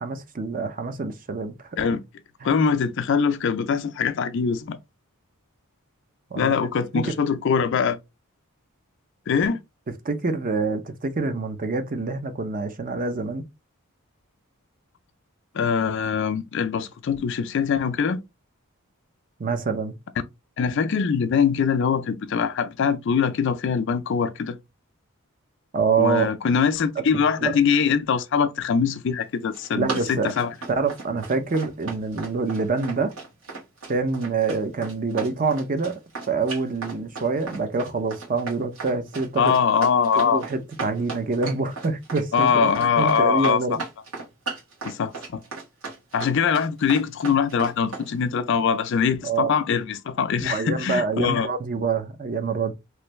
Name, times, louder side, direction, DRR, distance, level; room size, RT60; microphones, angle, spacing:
voice 1, 0.0-1.5 1.8-1.9 2.4-2.6 6.3-6.5 6.9-7.1 10.0-13.5 19.4-19.9 25.7-26.3 27.1-27.5 29.7-30.3 30.8-33.1 33.9-36.0 36.3-39.5 40.2-42.7 43.0-43.8 49.2-49.5 50.4-52.7, right 4 dB, 40° right, 0.5 m, -26 dB
voice 2, 2.4-4.8 6.4-8.0 9.3-9.6 15.5-18.2 20.6-24.6 26.0-30.5 39.4-40.4 42.3-43.8 44.8-45.4 46.1-51.5, left 6 dB, 55° left, 0.4 m, -23 dB
Run, 29.3-48.1, right 4 dB, 85° right, 1.6 m, -36 dB
3.2 x 2.6 x 3.0 m
head